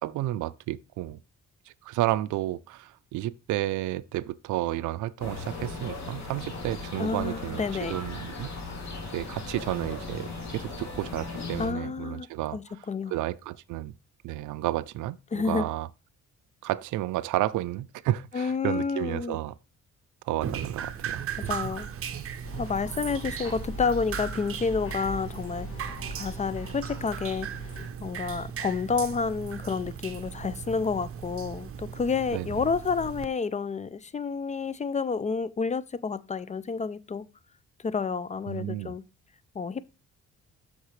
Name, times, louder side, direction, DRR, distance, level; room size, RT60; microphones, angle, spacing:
voice 1, 0.0-1.2 1.7-8.5 9.1-12.9 13.1-13.9 14.2-15.9 16.6-19.5 20.2-21.3 32.3-32.6 38.5-38.9, right 15 dB, 80° right, 0.5 m, -31 dB
sound 1, 5.2-11.7, left 3 dB, 65° left, 3.0 m, -37 dB
voice 2, 7.0-8.0 11.6-12.3 12.5-13.1 15.3-15.7 18.3-19.4 21.5-21.9 22.6-25.7 26.1-27.5 28.0-37.2 37.8-39.0 39.5-39.8, left 5 dB, 25° left, 0.4 m, -29 dB
Drip, 20.4-33.3, right 8 dB, 50° right, 0.8 m, -37 dB
sound 2, 22.4-27.9, equal, 45° left, 2.5 m, -40 dB
8.1 x 6.5 x 3.1 m
cardioid pair, 90°, 30 cm